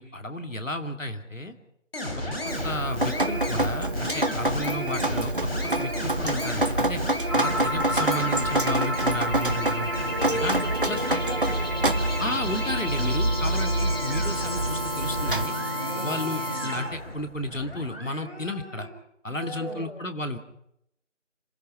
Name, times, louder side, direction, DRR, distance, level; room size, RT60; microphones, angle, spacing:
voice 1, 0.0-1.5 2.2-2.3 2.6-5.3 5.8-7.0 7.3-9.9 10.3-11.2 12.2-15.6 16.0-18.9 19.2-20.4, left 1 dB, 85° left, 6 dB, 2.6 m, -32 dB
sound 1, 1.9-18.9, left 1 dB, 50° left, 6.1 m, -35 dB
Drip, 2.5-15.5, right 2 dB, 45° right, 1.1 m, -27 dB
voice 2, 7.2-7.6 9.9-12.2 13.4-13.6 15.7-16.1 19.3-19.9, right 1 dB, 10° right, -5 dB, 3.8 m, -37 dB
sound 2, 7.3-17.0, equal, 20° left, 6.4 m, -31 dB
27.0 x 17.0 x 5.6 m, 0.75 s
figure-of-eight pair, 170°, 38 cm